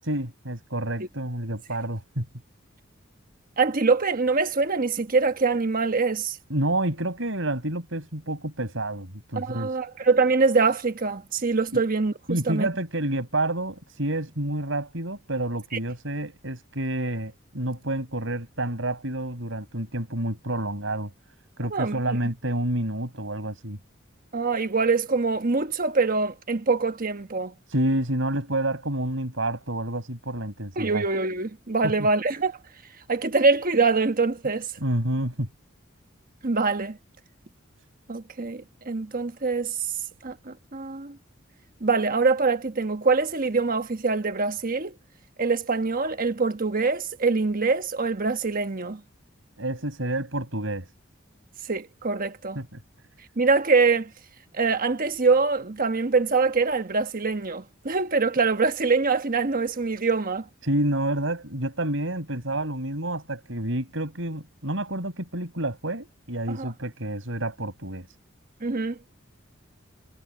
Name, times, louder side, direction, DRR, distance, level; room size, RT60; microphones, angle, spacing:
voice 1, 0.0-2.3 6.5-9.7 11.7-11.8 12.3-21.1 21.6-23.8 27.7-31.1 31.8-31.9 34.8-35.5 49.6-50.9 52.6-52.8 60.6-68.1, right 1 dB, 70° right, 7.1 m, -29 dB
voice 2, 3.6-6.4 9.4-12.7 21.7-22.2 24.3-27.5 30.8-32.6 33.1-34.7 36.4-37.0 38.1-39.8 40.2-41.2 41.8-44.9 45.4-49.0 51.7-52.6 53.4-54.1 54.5-60.5 66.5-66.7 68.6-69.0, right 4 dB, 45° right, 1.2 m, -24 dB
head